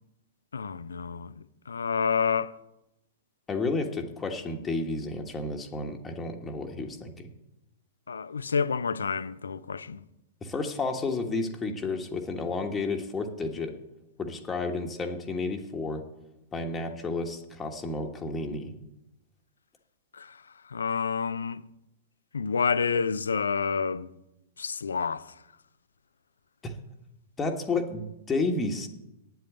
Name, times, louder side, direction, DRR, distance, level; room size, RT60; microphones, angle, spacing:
voice 1, 0.5-2.5 8.1-10.0 20.1-20.4 20.7-21.6 22.3-24.1 24.6-25.3, left 6 dB, 70° left, 0.5 m, -29 dB
voice 2, 3.5-7.3 10.4-13.7 14.2-16.0 16.5-18.7 26.6-26.7 27.4-28.9, left 3 dB, 15° left, 1.4 m, -31 dB
9.1 x 7.9 x 8.9 m
figure-of-eight pair, 105°, 0 cm